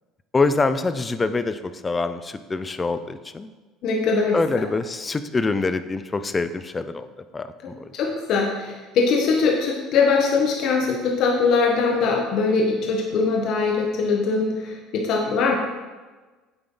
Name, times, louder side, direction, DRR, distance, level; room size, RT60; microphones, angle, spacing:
voice 1, 0.3-3.5 4.3-7.1 7.3-7.9, left 3 dB, 20° left, 11 dB, 0.6 m, -25 dB
voice 2, 3.8-4.6 8.0-15.6, left 4 dB, 60° left, -1 dB, 1.4 m, -22 dB
8.7 x 7.9 x 4.0 m, 1.3 s
supercardioid pair, 95°, 0 cm